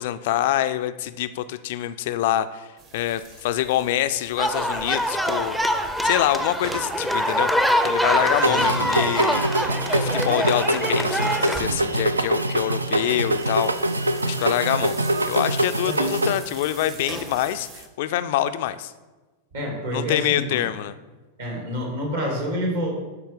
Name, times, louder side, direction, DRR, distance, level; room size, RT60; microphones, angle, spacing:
voice 1, 0.0-2.7 2.9-5.6 6.0-7.5 7.8-9.4 9.9-13.7 14.2-15.0 15.2-18.9 19.9-21.0, left 13 dB, 50° left, 12 dB, 0.3 m, -25 dB
sound 1, 2.8-17.9, right 4 dB, 35° right, 0.9 m, -42 dB
sound 2, 4.4-11.6, equal, 5° right, 0.5 m, -24 dB
voice 2, 8.4-8.9 15.8-16.0 19.5-20.6 21.4-22.9, equal, 65° right, 0 dB, 2.2 m, -28 dB
sound 3, 8.4-16.4, right 1 dB, 80° right, 0.3 m, -24 dB
11.5 x 4.3 x 3.5 m, 1.2 s
figure-of-eight pair, 90°, 0 cm